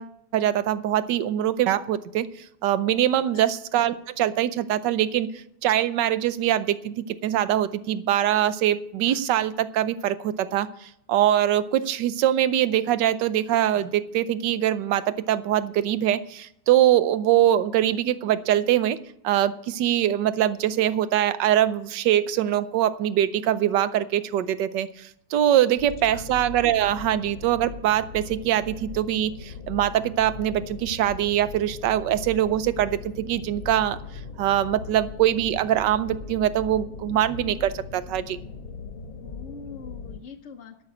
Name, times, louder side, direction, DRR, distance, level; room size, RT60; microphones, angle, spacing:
voice 1, 0.0-2.3 2.6-19.0 19.2-34.0 34.4-38.4, right 11 dB, 70° right, 14 dB, 1.2 m, -23 dB
sound 1, 9.0-9.2 11.8-12.0 13.7-13.9 15.7-16.1, right 5 dB, 20° right, 0.9 m, -46 dB
sound 2, 25.8-40.2, left 4 dB, 75° left, 1.8 m, -39 dB
voice 2, 39.2-40.8, left 5 dB, 55° left, 4 dB, 0.7 m, -43 dB
13.0 x 6.2 x 8.4 m, 0.75 s
omnidirectional pair, 2.2 m